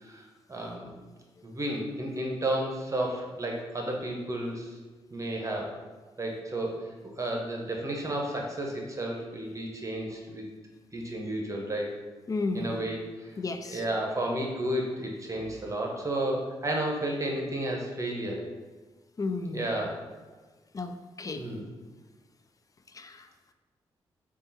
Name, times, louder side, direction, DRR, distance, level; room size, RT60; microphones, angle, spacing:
voice 1, 0.0-0.9 1.4-4.7 5.1-5.7 6.2-6.7 7.0-10.4 10.9-11.9 12.5-13.3 13.7-18.4 19.5-19.9 21.4-21.7, right 1 dB, 30° right, 0 dB, 0.9 m, -32 dB
voice 2, 12.3-12.8 13.4-13.8 19.2-19.6 20.7-21.4 22.9-23.3, left 3 dB, 35° left, 8 dB, 0.4 m, -33 dB
3.6 x 2.4 x 4.0 m, 1.4 s
supercardioid pair, 55°, 11 cm